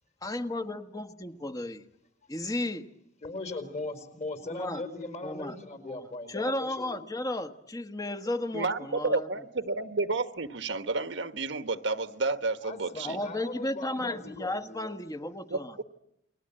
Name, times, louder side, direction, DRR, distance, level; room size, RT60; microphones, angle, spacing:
voice 1, 0.2-1.8 2.3-2.8 4.4-4.8 5.2-5.6 5.8-9.3 13.0-15.8, left 1 dB, 20° left, 9 dB, 1.4 m, -34 dB
voice 2, 3.2-6.9 12.6-14.9, left 2 dB, 40° left, 8 dB, 4.8 m, -39 dB
voice 3, 8.5-13.2 15.5-15.8, right 3 dB, 75° right, 10 dB, 1.3 m, -31 dB
29.5 x 22.0 x 8.9 m, 0.79 s
head